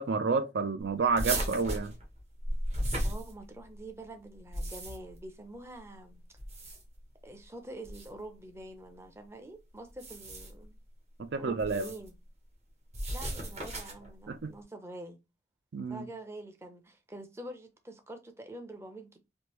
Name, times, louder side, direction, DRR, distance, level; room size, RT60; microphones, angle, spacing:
voice 1, 0.0-1.9 11.2-11.9 14.3-14.5 15.7-16.1, right 4 dB, 70° right, 0.4 m, -30 dB
sound 1, 1.2-3.8 4.3-5.2 6.3-7.0 7.8-8.1 9.9-10.6 11.6-12.1 12.9-14.1, right 1 dB, 35° right, 1.0 m, -35 dB
voice 2, 3.0-6.2 7.2-10.8 11.3-12.1 13.1-15.2 15.9-19.2, right 1 dB, 15° right, 0.5 m, -46 dB
3.5 x 2.6 x 3.0 m
head